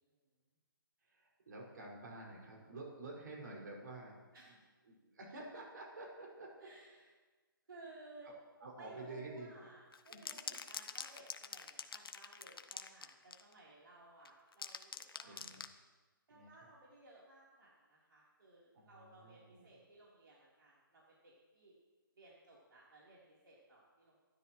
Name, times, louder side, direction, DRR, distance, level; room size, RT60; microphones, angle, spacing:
voice 1, 1.0-4.1 4.9-6.7 8.6-9.5 10.1-10.2 10.5-10.6 15.2-15.7 16.3-16.5 18.7-19.6, right 2 dB, 55° right, -2 dB, 5.7 m, -50 dB
voice 2, 4.3-4.7 6.6-7.1 7.6-8.3 8.8-15.4 16.3-21.8 22.1-24.2, right 2 dB, 70° right, -5 dB, 3.8 m, -59 dB
sound 1, 9.9-13.5 14.3-15.8, left 5 dB, 80° left, 1.1 m, -45 dB
26.0 x 13.0 x 3.2 m, 1.3 s
hypercardioid pair, 170°, 12 cm